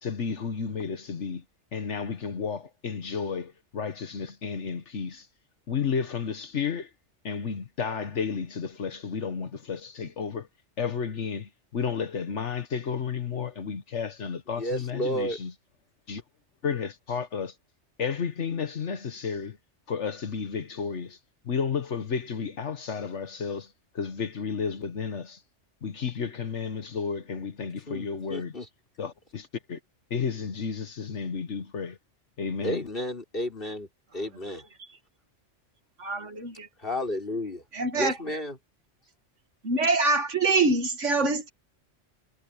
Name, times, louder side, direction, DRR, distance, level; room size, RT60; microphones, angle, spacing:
voice 1, 0.0-1.4 1.7-5.3 5.7-6.9 7.2-10.5 10.8-15.5 16.1-16.2 16.6-17.6 18.0-19.6 19.9-21.2 21.4-25.4 25.8-28.5 29.0-29.8 30.1-32.0 32.4-32.8, left 6 dB, 75° left, 1.5 m, -32 dB
voice 2, 14.5-15.4 27.9-28.7 32.6-33.9 34.1-34.6 36.8-37.6 37.9-38.6, left 1 dB, 50° left, 5.8 m, -32 dB
voice 3, 36.0-36.7 37.7-38.1 39.6-41.5, right 3 dB, 85° right, 2.4 m, -25 dB
omnidirectional pair, 1.2 m